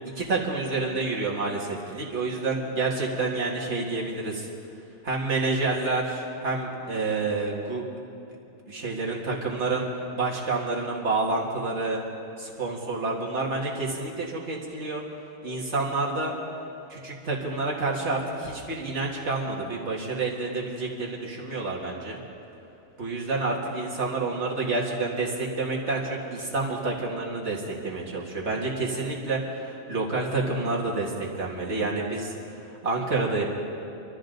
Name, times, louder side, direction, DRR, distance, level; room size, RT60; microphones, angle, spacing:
voice 1, 0.2-4.5 5.0-7.8 8.7-9.9 10.1-12.0 12.4-15.0 15.4-16.3 16.9-22.2 23.0-33.4, right 3 dB, 55° right, -3 dB, 2.4 m, -28 dB
24.5 x 13.5 x 4.0 m, 2.7 s
omnidirectional pair, 1.4 m